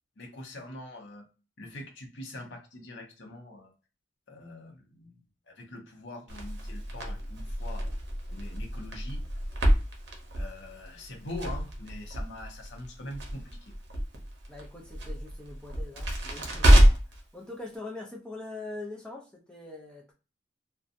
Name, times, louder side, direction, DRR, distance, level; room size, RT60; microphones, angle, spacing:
voice 1, 0.2-1.3 1.6-3.7 4.3-5.2 5.5-7.9 8.3-9.2 10.3-13.7, left 1 dB, 75° left, 2 dB, 0.7 m, -43 dB
Crackle, 6.3-17.2, equal, 70° right, 0.7 m, -27 dB
voice 2, 14.5-20.1, left 2 dB, 5° left, -1 dB, 0.5 m, -43 dB
2.7 x 2.2 x 2.5 m, 0.32 s
head